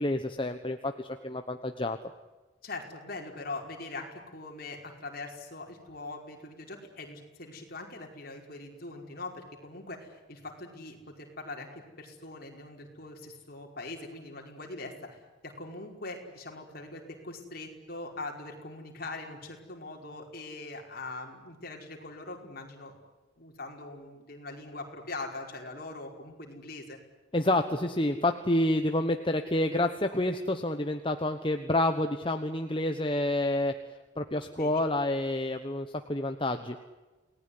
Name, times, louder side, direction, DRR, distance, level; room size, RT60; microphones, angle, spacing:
voice 1, 0.0-2.0 27.3-33.7 34.2-36.8, left 1 dB, 25° left, 6 dB, 1.2 m, -28 dB
voice 2, 2.6-22.9 23.4-27.0 34.6-34.8, left 2 dB, 50° left, 2 dB, 5.2 m, -42 dB
29.0 x 19.5 x 9.9 m, 1.2 s
head